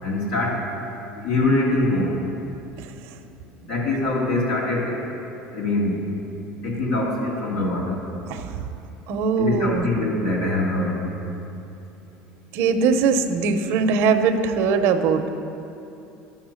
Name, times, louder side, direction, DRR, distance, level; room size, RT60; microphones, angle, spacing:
voice 1, 0.0-0.6 1.2-2.1 3.7-5.1 5.5-6.0 6.6-8.0 9.4-11.0, left 2 dB, 85° left, -4 dB, 2.2 m, -23 dB
voice 2, 9.1-9.9 12.5-15.3, right 5 dB, 70° right, 7 dB, 0.8 m, -21 dB
11.5 x 7.2 x 6.4 m, 2.8 s
supercardioid pair, 115°, 4 cm